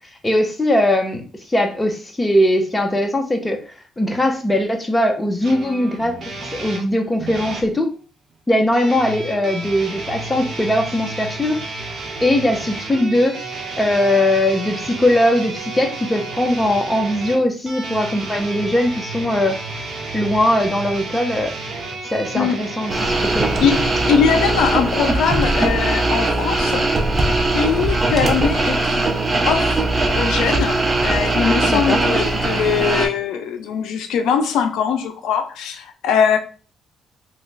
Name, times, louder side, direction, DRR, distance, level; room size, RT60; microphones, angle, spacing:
voice 1, 0.2-1.2 1.5-6.1 6.4-7.9 8.5-11.6 12.2-19.6 20.1-21.5 22.1-23.5 31.7-32.0, left 1 dB, 15° left, 4 dB, 0.7 m, -20 dB
sound 1, 5.4-7.7 8.7-24.2, right 3 dB, 55° right, 1.0 m, -31 dB
sound 2, 22.9-33.1, right 2 dB, 25° right, 0.7 m, -20 dB
voice 2, 24.1-26.9 27.5-29.1 29.4-29.9 30.2-36.4, left 7 dB, 85° left, 7 dB, 0.4 m, -21 dB
2.9 x 2.2 x 3.8 m, 0.38 s
cardioid pair, 90°, 0 cm